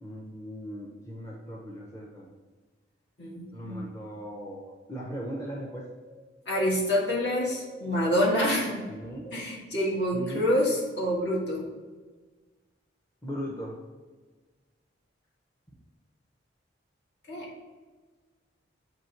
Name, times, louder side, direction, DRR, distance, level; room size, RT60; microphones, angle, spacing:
voice 1, 0.0-2.3 3.5-5.9 8.9-9.2 10.1-10.5 13.2-13.8, equal, 15° left, -3 dB, 0.7 m, -38 dB
voice 2, 3.2-3.8 6.4-8.8 9.2-11.6 17.3-17.5, equal, 60° left, -4 dB, 1.7 m, -27 dB
7.7 x 2.8 x 4.4 m, 1.4 s
head